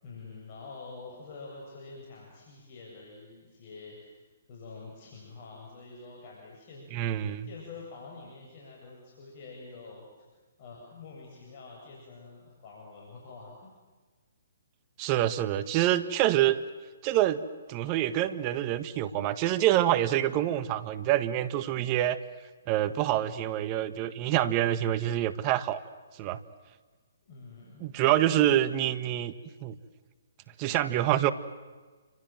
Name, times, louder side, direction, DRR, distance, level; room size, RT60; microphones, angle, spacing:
voice 1, 0.0-4.1 4.5-10.0 10.6-13.7 27.2-27.9, left 4 dB, 45° left, -2 dB, 8.0 m, -47 dB
voice 2, 6.9-7.5 15.0-16.6 17.0-17.4 17.7-22.2 22.7-25.8 26.2-26.4 27.8-29.3 29.6-29.8 30.6-31.3, right 12 dB, 30° right, 14 dB, 1.6 m, -26 dB
29.5 x 26.0 x 7.8 m, 1.4 s
hypercardioid pair, 135°, 0 cm